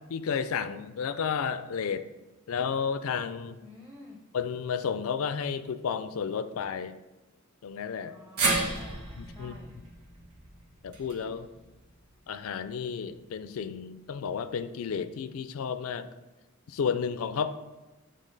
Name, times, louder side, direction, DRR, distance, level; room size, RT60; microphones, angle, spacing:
voice 1, 0.1-2.0 2.5-3.6 4.3-7.0 7.6-8.1 9.2-9.6 10.8-11.5 12.3-16.1 16.7-17.5, left 6 dB, 75° left, 11 dB, 0.4 m, -32 dB
voice 2, 3.6-4.2 8.0-9.8, left 2 dB, 15° right, -1 dB, 0.7 m, -50 dB
sound 1, 8.4-12.6 13.0-13.1 14.3-14.4, right 3 dB, 75° right, 1.3 m, -33 dB
8.3 x 3.8 x 3.9 m, 1.1 s
head